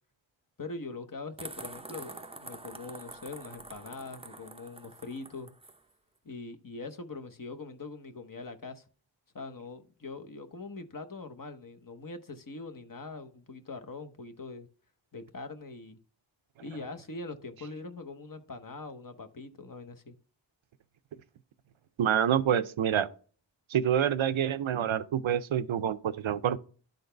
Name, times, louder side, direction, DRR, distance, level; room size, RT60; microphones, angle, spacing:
voice 1, 0.6-5.5 6.2-8.8 9.3-14.7 15.1-16.0 16.6-20.1, left 3 dB, 45° left, 0.9 m, -42 dB
sound 1, 1.4-5.8, right 2 dB, 15° right, 0.5 m, -46 dB
voice 2, 22.0-23.1 23.7-26.6, right 9 dB, 80° right, 0.6 m, -27 dB
11.5 x 4.0 x 3.3 m
wide cardioid pair, 50°, 47 cm